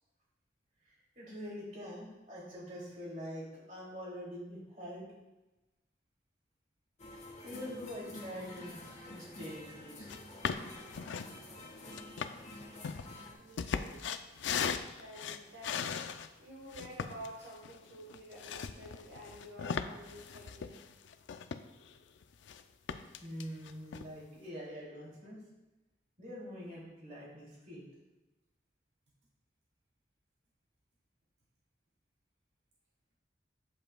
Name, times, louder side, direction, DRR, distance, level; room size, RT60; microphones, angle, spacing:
voice 1, 0.8-5.1 7.4-10.1 23.2-25.4 26.2-27.8, equal, 45° right, -4 dB, 2.6 m, -45 dB
sound 1, 7.0-13.3, left 1 dB, 40° left, 1.2 m, -49 dB
sound 2, 10.1-10.2 10.4-11.3 11.9-16.3 16.7-21.9 22.2-22.6 22.9-24.1, left 6 dB, 85° left, 0.4 m, -38 dB
voice 2, 13.4-14.1 15.0-15.9 16.4-20.9, right 1 dB, 75° right, -3 dB, 1.3 m, -50 dB
8.6 x 7.7 x 2.3 m, 1.0 s
head